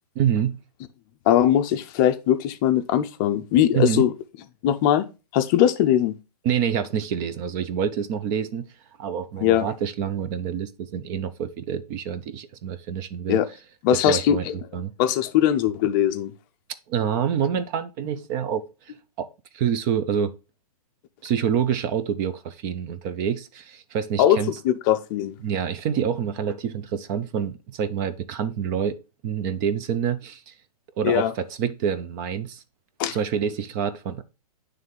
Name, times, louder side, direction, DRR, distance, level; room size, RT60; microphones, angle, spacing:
voice 1, 0.2-0.6 3.7-4.1 6.4-8.7 9.0-13.4 13.9-14.5 14.7-14.9 16.9-18.6 19.2-19.3 19.5-20.3 21.2-24.5 25.4-29.0 29.2-30.5 31.0-32.6 33.1-34.2, right 8 dB, 30° right, 0.5 m, -27 dB
voice 2, 1.3-4.1 4.6-5.1 5.3-6.1 9.4-9.7 13.3-13.5 13.8-14.4 15.0-16.3 24.2-24.4 24.6-25.4 31.0-31.3 33.0-33.2, left 11 dB, 30° left, 0.5 m, -20 dB
9.1 x 3.3 x 3.7 m
hypercardioid pair, 135°, 20 cm